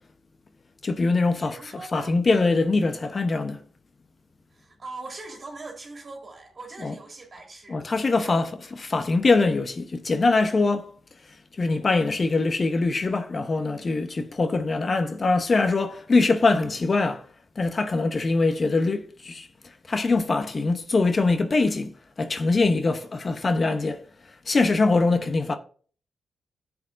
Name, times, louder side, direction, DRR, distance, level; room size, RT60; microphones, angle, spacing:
voice 1, 0.8-3.6 6.8-6.9 7.7-10.9 11.6-17.3 17.6-19.5 19.9-24.0 24.5-25.6, left 3 dB, 45° left, 0.8 m, -23 dB
voice 2, 1.4-2.1 4.5-7.8 8.2-8.4, right 3 dB, 45° right, 2.3 m, -41 dB
10.5 x 7.0 x 2.5 m
supercardioid pair, 50°, 0 cm